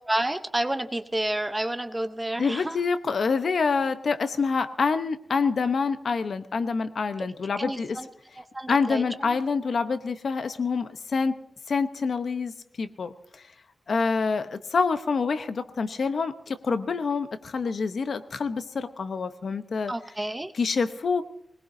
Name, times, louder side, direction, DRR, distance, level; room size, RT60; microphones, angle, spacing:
voice 1, 0.1-2.8 7.6-8.1 8.4-9.0 19.9-20.5, right 1 dB, 15° right, 9 dB, 0.8 m, -29 dB
voice 2, 2.4-8.0 8.7-11.3 11.7-13.1 13.9-19.9 20.5-21.2, left 5 dB, 55° left, 10 dB, 0.9 m, -26 dB
21.0 x 20.5 x 2.7 m, 0.74 s
wide cardioid pair, 180°, 0 cm